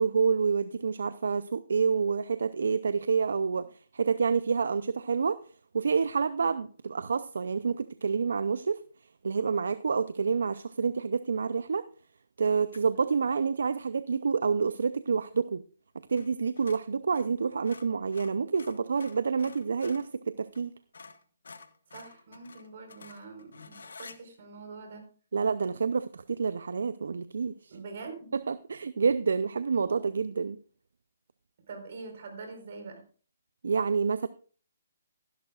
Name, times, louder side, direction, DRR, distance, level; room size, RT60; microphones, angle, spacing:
voice 1, 0.0-5.4 5.7-8.8 9.2-11.8 12.4-15.6 16.1-20.7 25.3-27.7 28.3-30.6 33.6-34.3, right 5 dB, 75° right, 15 dB, 0.5 m, -28 dB
sound 1, 12.7-13.0 16.1-16.3 16.6-20.1 20.5-20.7 20.9-24.2, left 4 dB, 85° left, 1.3 m, -50 dB
voice 2, 21.9-25.0 27.7-28.3 31.7-33.0, right 4 dB, 55° right, 5 dB, 4.3 m, -44 dB
15.5 x 11.0 x 2.4 m, 0.41 s
hypercardioid pair, 150°, 0 cm